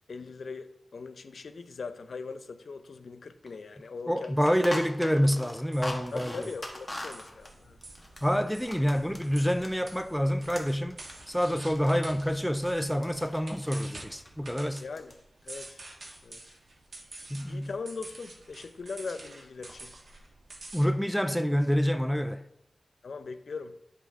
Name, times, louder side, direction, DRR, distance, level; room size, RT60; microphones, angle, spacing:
voice 1, 0.1-4.4 6.1-7.8 14.8-15.1 15.4-15.8 16.2-16.5 17.5-19.9 23.0-23.7, left 4 dB, 70° left, 0.6 m, -40 dB
sound 1, 3.5-3.6 3.8-3.9 4.2-10.0 10.3-12.7 13.0-13.8 14.1-14.3 14.7-15.2 15.4-16.2, left 1 dB, 15° left, 1.3 m, -42 dB
voice 2, 4.1-6.5 8.2-11.0 11.3-14.8 17.3-17.7 20.7-22.4, equal, ahead, 0.4 m, -27 dB
sound 2, 5.7-20.9, right 2 dB, 60° right, 1.4 m, -49 dB
9.8 x 5.5 x 3.6 m
wide cardioid pair, 105°, 0 cm